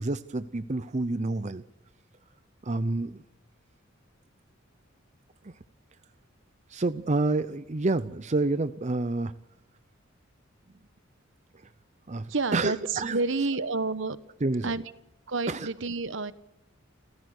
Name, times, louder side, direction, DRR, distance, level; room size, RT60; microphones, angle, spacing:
voice 1, 0.0-1.6 2.6-3.2 5.4-5.5 6.7-9.3 12.1-13.2 14.4-14.7 15.5-15.7, right 2 dB, 35° right, 12 dB, 0.6 m, -28 dB
voice 2, 12.3-14.2 14.6-14.8 15.3-16.3, right 3 dB, 65° right, 14 dB, 1.1 m, -29 dB
28.5 x 15.0 x 6.6 m, 0.93 s
head